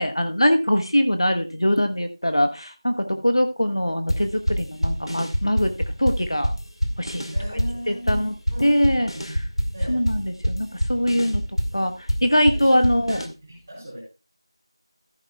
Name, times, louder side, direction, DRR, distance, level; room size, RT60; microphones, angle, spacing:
voice 1, 0.0-5.7 6.0-6.5 7.0-7.2 7.9-8.3 8.6-9.4 9.9-11.4 11.7-13.2, equal, 65° left, 7 dB, 1.2 m, -22 dB
sound 1, 4.1-13.3, equal, 85° left, 2.2 m, -26 dB
voice 2, 7.3-9.1 9.7-10.0 12.5-12.8 13.1-14.0, equal, 10° right, -8 dB, 3.8 m, -38 dB
14.0 x 10.5 x 2.3 m, 0.30 s
figure-of-eight pair, 175°, 3 cm